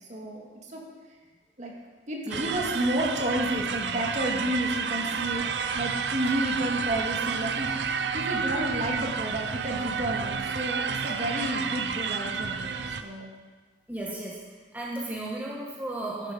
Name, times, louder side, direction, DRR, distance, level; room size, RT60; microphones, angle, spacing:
voice 1, 0.1-0.8 1.6-1.7 2.1-12.6 13.0-13.3, right 1 dB, 45° right, -1 dB, 2.1 m, -31 dB
sound 1, 2.3-13.0, right 6 dB, 80° right, 0.6 m, -30 dB
voice 2, 13.9-14.4 14.7-16.3, right 2 dB, 10° right, -4 dB, 1.4 m, -34 dB
11.5 x 10.0 x 5.1 m, 1.4 s
head